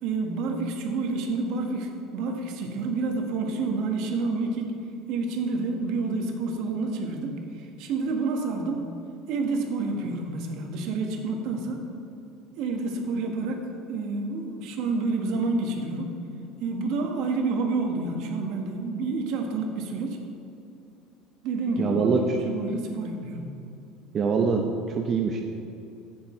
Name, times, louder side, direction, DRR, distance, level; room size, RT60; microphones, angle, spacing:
voice 1, 0.0-4.8 5.1-8.9 9.3-11.9 12.6-16.2 16.6-20.2 21.4-22.1 22.4-23.5, right 3 dB, 65° right, 3 dB, 1.5 m, -29 dB
voice 2, 21.8-22.4 24.1-25.4, right 5 dB, 35° right, 2 dB, 0.7 m, -24 dB
11.0 x 8.7 x 4.4 m, 2.5 s
cardioid pair, 135°, 0 cm